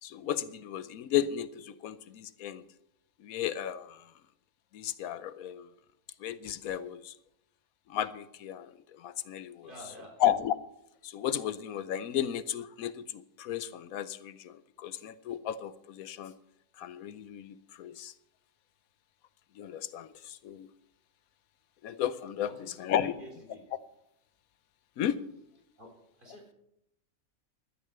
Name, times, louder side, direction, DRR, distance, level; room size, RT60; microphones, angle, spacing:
voice 1, 0.0-2.6 3.2-4.0 4.7-5.7 6.2-7.1 7.9-9.7 10.2-10.5 11.0-16.3 16.8-18.1 19.6-20.7 21.8-23.1 25.0-25.2, left 10 dB, 85° left, 15 dB, 1.1 m, -34 dB
voice 2, 9.6-10.1 22.4-23.6 25.8-25.9 26.2-26.5, equal, 35° right, -1 dB, 4.0 m, -49 dB
12.5 x 9.8 x 6.6 m, 0.80 s
omnidirectional pair, 1.5 m